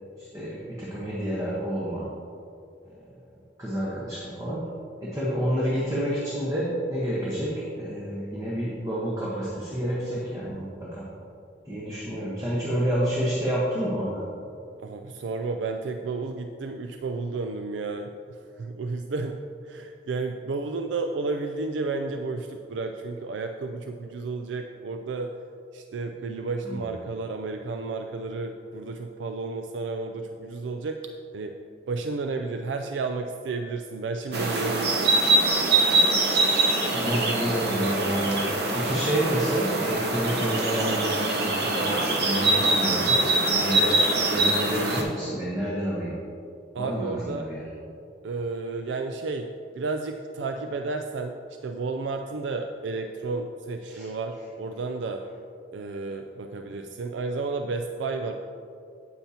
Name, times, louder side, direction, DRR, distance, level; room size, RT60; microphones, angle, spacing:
voice 1, 0.2-2.1 3.6-4.7 5.0-11.0 11.6-14.2 26.6-26.8 36.9-38.4 38.7-43.2 43.5-44.0 44.3-46.2 46.8-47.7 53.9-54.1, equal, 20° right, -7 dB, 1.1 m, -29 dB
voice 2, 14.8-19.4 19.6-25.3 25.7-31.0 31.3-31.5 31.9-35.2 46.7-47.5 48.2-49.5 49.8-55.2 55.7-58.3, right 3 dB, 85° right, 5 dB, 0.4 m, -32 dB
sound 1, 34.3-45.0, right 2 dB, 60° right, 1.1 m, -23 dB
8.9 x 8.5 x 2.9 m, 2.5 s
head